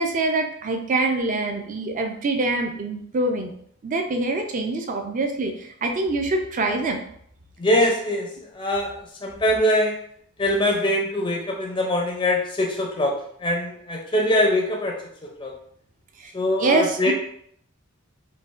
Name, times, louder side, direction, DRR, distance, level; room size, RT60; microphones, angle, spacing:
voice 1, 0.0-3.5 3.8-7.0 16.2-16.3 16.6-17.1, right 2 dB, 40° right, 4 dB, 0.4 m, -25 dB
voice 2, 7.6-8.3 8.5-8.9 9.2-10.0 10.4-13.1 13.4-14.9 15.2-15.5 16.3-17.1, left 1 dB, 20° left, 0 dB, 0.4 m, -22 dB
3.9 x 2.1 x 2.4 m, 0.66 s
head